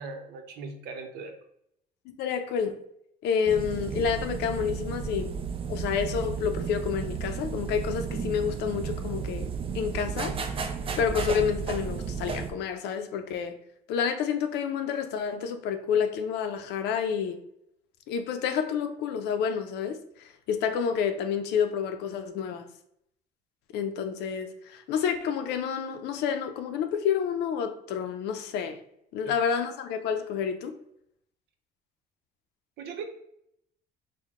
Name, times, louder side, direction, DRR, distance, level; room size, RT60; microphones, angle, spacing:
voice 1, 0.0-1.4 29.2-29.4 32.8-33.0, right 4 dB, 75° right, 0.7 m, -39 dB
voice 2, 2.1-2.8 3.2-5.3 5.7-9.5 9.7-10.3 11.0-13.5 13.9-17.4 18.1-22.7 23.7-28.8 29.1-30.7, left 7 dB, 85° left, 0.5 m, -29 dB
sound 1, 3.5-12.5, right 6 dB, 35° right, 0.5 m, -33 dB
4.5 x 2.2 x 3.6 m
cardioid pair, 110°, 17 cm